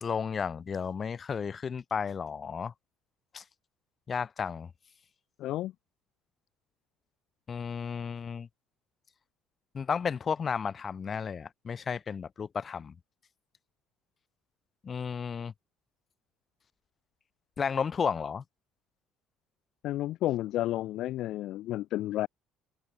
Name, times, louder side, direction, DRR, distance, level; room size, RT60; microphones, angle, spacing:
voice 1, 0.0-2.7 3.3-3.4 4.1-4.7 7.5-8.5 9.7-12.9 14.8-15.5 17.6-18.4, left 6 dB, 40° left, 1.2 m, -33 dB
voice 2, 5.4-5.7 19.8-22.3, left 15 dB, 70° left, 0.6 m, -31 dB
supercardioid pair, 85°, 0 cm